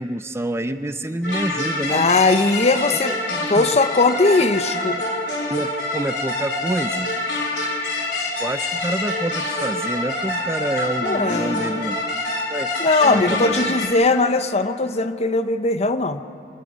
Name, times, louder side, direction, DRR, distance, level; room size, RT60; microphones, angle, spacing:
voice 1, 0.0-2.1 3.5-3.7 5.5-7.1 8.4-12.0 12.5-12.7 13.0-13.9, right 1 dB, 15° right, 10 dB, 0.6 m, -27 dB
sound 1, 1.2-13.9, left 2 dB, 75° left, 3.4 m, -26 dB
voice 2, 1.9-5.0 11.0-11.8 12.8-16.2, left 3 dB, 40° left, 10 dB, 0.9 m, -19 dB
27.0 x 27.0 x 5.3 m, 2.5 s
head